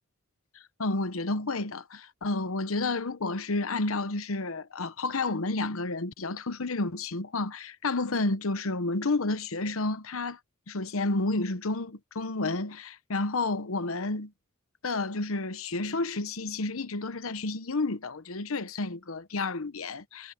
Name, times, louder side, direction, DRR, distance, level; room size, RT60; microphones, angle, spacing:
voice 1, 0.8-10.4 10.7-14.3 14.8-20.3, left 3 dB, 85° left, 1.0 m, -30 dB
head